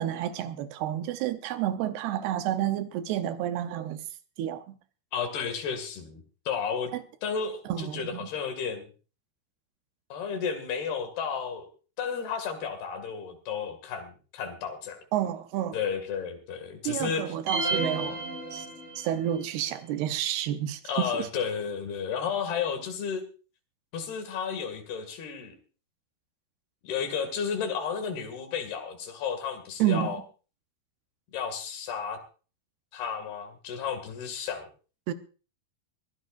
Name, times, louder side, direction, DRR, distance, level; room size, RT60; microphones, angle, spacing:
voice 1, 0.0-4.0 4.4-4.8 6.9-7.0 7.7-8.3 15.1-15.8 16.8-18.7 19.0-21.3 29.8-30.2 35.1-35.2, right 11 dB, 80° right, 2.9 m, -30 dB
voice 2, 5.1-6.9 7.2-8.9 10.1-11.7 12.0-15.0 15.7-17.3 20.9-23.2 23.9-25.6 26.8-30.2 31.3-32.2 32.9-34.7, left 6 dB, 75° left, 4.3 m, -32 dB
sound 1, 17.5-19.3, right 3 dB, 55° right, 6.3 m, -31 dB
22.5 x 15.5 x 2.6 m
omnidirectional pair, 4.6 m